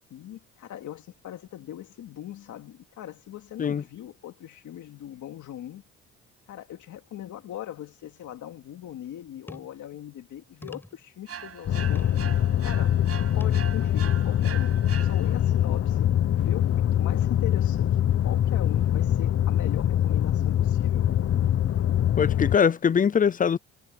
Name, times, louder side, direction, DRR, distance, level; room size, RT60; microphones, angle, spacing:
voice 1, 0.1-5.8 6.5-12.1 12.6-13.0 13.3-18.0 18.2-21.1, left 12 dB, 75° left, 2.6 m, -40 dB
sound 1, 9.5-9.8 10.6-11.1 11.9-12.3 13.4-13.6 14.3-14.4, left 1 dB, 5° left, 6.2 m, -43 dB
sound 2, 11.3-15.6, right 8 dB, 50° right, 7.3 m, -41 dB
sound 3, 11.7-22.6, left 11 dB, 50° left, 0.8 m, -23 dB
voice 2, 22.2-23.6, left 7 dB, 30° left, 0.5 m, -22 dB
cardioid pair, 90°, 30 cm